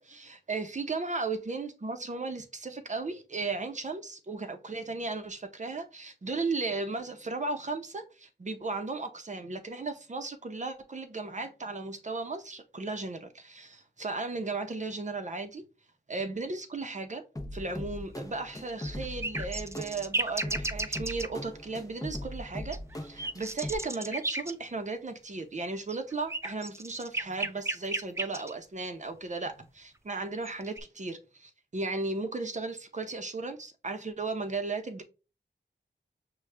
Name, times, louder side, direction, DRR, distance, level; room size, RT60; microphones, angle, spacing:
voice 1, 0.0-15.6 16.1-17.2 17.5-35.0, right 3 dB, 40° right, 0.7 m, -35 dB
sound 1, 17.4-23.8, left 1 dB, 20° left, 0.7 m, -40 dB
sound 2, 18.7-21.3 22.7-24.5 25.8-28.5 30.2-30.8, right 2 dB, 15° right, 0.4 m, -33 dB
6.3 x 2.3 x 3.3 m
wide cardioid pair, 100°, 18 cm